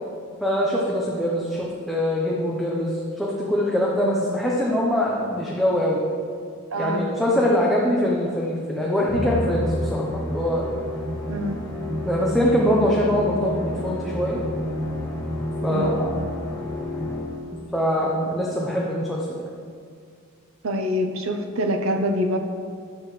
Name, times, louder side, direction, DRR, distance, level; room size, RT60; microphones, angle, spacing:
voice 1, 0.4-6.0 6.8-10.6 12.0-14.4 15.6-16.1 17.7-19.4, equal, ahead, -5 dB, 0.8 m, -23 dB
voice 2, 6.7-7.0 11.3-11.6 15.7-15.9 16.6-16.7 20.6-22.4, equal, 70° right, 5 dB, 0.8 m, -25 dB
Musical instrument, 9.1-17.6, left 1 dB, 20° left, 2.0 m, -29 dB
10.5 x 7.9 x 3.3 m, 2.2 s
head